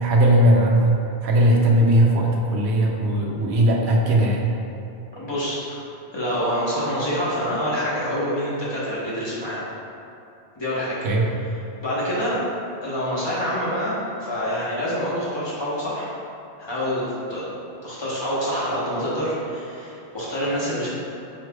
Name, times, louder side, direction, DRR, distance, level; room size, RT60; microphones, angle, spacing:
voice 1, 0.0-4.5 11.0-11.2, right 1 dB, 75° right, -1 dB, 0.8 m, -18 dB
voice 2, 5.1-5.8 6.1-9.6 10.5-11.0 11.8-12.4 12.8-16.1 16.6-17.5 17.8-20.9, equal, 25° left, -9 dB, 0.9 m, -26 dB
5.6 x 3.1 x 2.2 m, 2.7 s
omnidirectional pair, 1.1 m